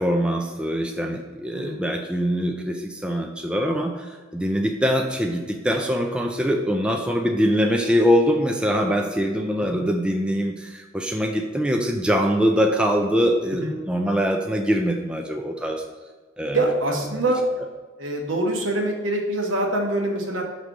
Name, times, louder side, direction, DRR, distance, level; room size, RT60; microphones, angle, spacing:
voice 1, 0.0-4.1 4.3-15.8 16.4-16.6, equal, 5° right, 2 dB, 0.4 m, -23 dB
voice 2, 16.5-17.4 18.0-20.4, right 1 dB, 85° right, 1 dB, 1.2 m, -24 dB
6.1 x 3.2 x 5.3 m, 1.4 s
head